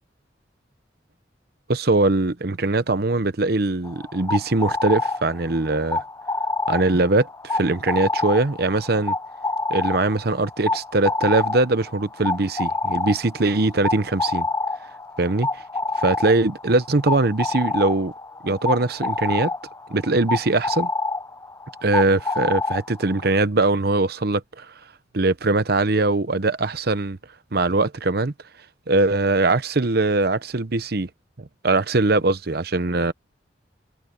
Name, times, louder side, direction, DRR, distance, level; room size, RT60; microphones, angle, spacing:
voice 1, 1.7-6.0 6.7-9.1 9.7-14.5 15.2-15.6 16.0-18.1 18.4-19.5 19.9-20.9 21.8-24.7 25.1-27.2 27.5-28.3 28.9-31.1 31.4-33.1, right 2 dB, 60° right, 0.9 m, -21 dB
sound 1, 3.8-23.3, left 3 dB, 15° left, 0.8 m, -28 dB
head